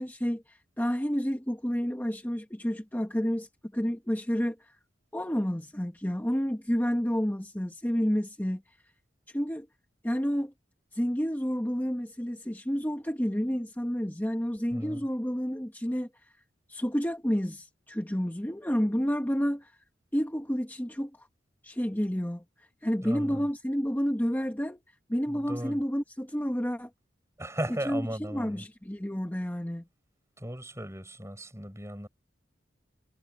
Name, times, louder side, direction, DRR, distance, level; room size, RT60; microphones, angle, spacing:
voice 1, 0.0-4.8 5.1-8.8 9.3-9.7 10.0-10.5 10.9-16.3 16.7-19.7 20.1-21.3 21.6-24.8 25.1-26.9 27.9-28.0 28.3-29.8, equal, 10° left, 1.3 m, -30 dB
voice 2, 14.7-15.1 23.0-23.5 25.3-25.8 27.4-28.6 30.4-32.1, right 1 dB, 15° right, 6.4 m, -36 dB
head